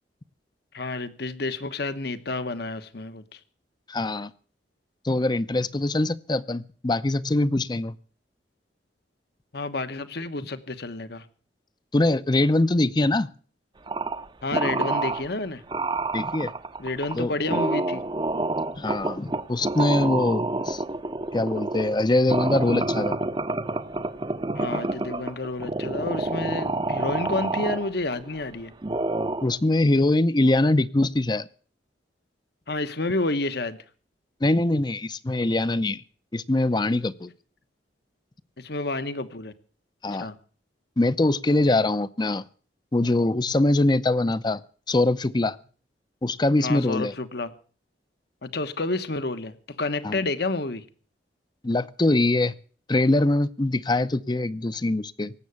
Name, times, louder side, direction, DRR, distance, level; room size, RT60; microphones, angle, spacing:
voice 1, 0.7-3.4 9.5-11.2 14.4-15.6 16.8-18.0 24.6-28.7 32.7-33.8 38.6-39.5 40.2-40.4 46.6-47.5 48.4-50.8, left 2 dB, 65° left, 11 dB, 1.2 m, -30 dB
voice 2, 3.9-4.3 5.0-8.0 11.9-13.3 16.1-16.5 17.1-17.3 18.8-20.8 21.3-23.2 29.4-31.5 34.4-36.0 36.3-37.3 40.0-40.3 41.0-42.4 42.9-44.6 44.9-45.6 46.2-47.1 50.0-50.2 51.6-52.5 52.9-55.3, left 2 dB, 25° left, 15 dB, 0.6 m, -23 dB
sound 1, 13.9-14.3 14.5-15.3 15.7-28.4 28.8-29.6, right 2 dB, 25° right, 0.7 m, -28 dB
18.5 x 7.8 x 8.3 m, 0.43 s
head